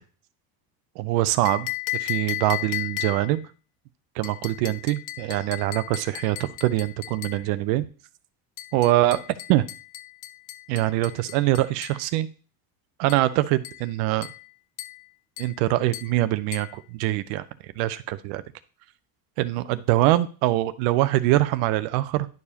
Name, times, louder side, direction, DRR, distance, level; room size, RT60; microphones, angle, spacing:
voice 1, 1.0-1.7 2.0-3.4 4.2-7.8 8.7-9.2 9.5-9.6 10.7-12.3 13.0-14.3 15.4-17.4 17.8-18.4 19.4-22.3, right 16 dB, 80° right, 14 dB, 0.7 m, -23 dB
sound 1, 1.5-3.4 4.2-7.5 8.6-12.0 13.1-13.3 13.6-13.9 14.2-14.5 14.8-15.1 15.4-15.6 15.9-16.2 16.5-16.8, left 17 dB, 65° left, 0.7 m, -35 dB
10.5 x 4.8 x 2.8 m, 0.37 s
supercardioid pair, 90°, 49 cm